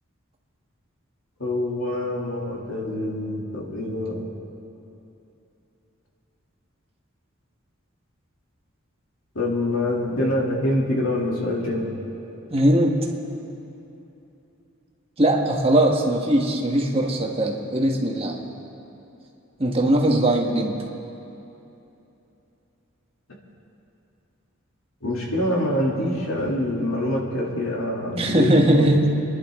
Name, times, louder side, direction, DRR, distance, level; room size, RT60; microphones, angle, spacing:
voice 1, 1.4-4.3 9.3-11.9 25.0-28.9, left 1 dB, 85° left, -3 dB, 3.0 m, -25 dB
voice 2, 12.5-13.1 15.2-18.4 19.6-20.8 28.2-29.1, right 1 dB, 30° right, 0 dB, 1.5 m, -20 dB
27.5 x 11.0 x 3.8 m, 2.9 s
head